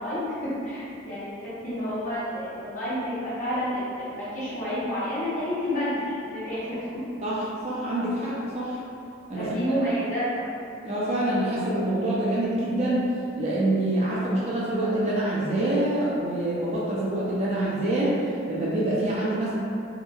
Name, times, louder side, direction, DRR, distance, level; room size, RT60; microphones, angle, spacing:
voice 1, 0.0-6.8 9.3-10.5, equal, 40° left, -11 dB, 0.8 m, -29 dB
voice 2, 7.2-8.8 9.3-9.5 10.8-13.1 13.4-18.2 18.5-19.5, right 1 dB, 35° right, -7 dB, 0.4 m, -26 dB
2.7 x 2.3 x 2.3 m, 2.5 s
head